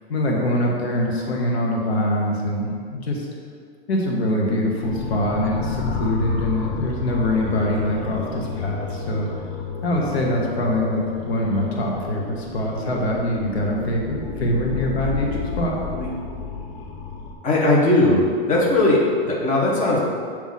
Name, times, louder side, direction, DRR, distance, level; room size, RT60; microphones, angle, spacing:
voice 1, 0.1-3.3 3.9-9.3 9.8-15.8, left 1 dB, 90° left, -1 dB, 1.2 m, -24 dB
sound 1, 4.8-17.3, left 5 dB, 65° left, 1.0 m, -31 dB
voice 2, 17.4-20.0, left 2 dB, 25° left, -5 dB, 1.4 m, -18 dB
8.4 x 3.0 x 4.0 m, 2.1 s
hypercardioid pair, 130°, 31 cm